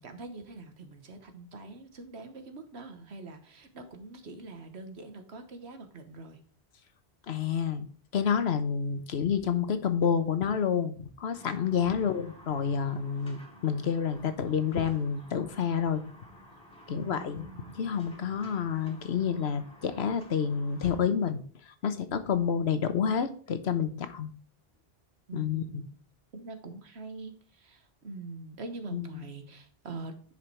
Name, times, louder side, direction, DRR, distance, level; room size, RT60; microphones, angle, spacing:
voice 1, 0.0-6.4 11.8-12.1 16.9-17.9 25.3-26.0 26.3-30.2, right 3 dB, 85° right, 7 dB, 1.5 m, -44 dB
voice 2, 7.3-7.8 8.1-16.0 16.9-21.4 21.8-24.3 25.3-25.8 28.9-29.2, left 7 dB, 80° left, 10 dB, 1.2 m, -29 dB
sound 1, 11.3-21.0, left 1 dB, 5° left, 2.3 m, -53 dB
10.0 x 5.0 x 4.5 m, 0.43 s
omnidirectional pair, 1.1 m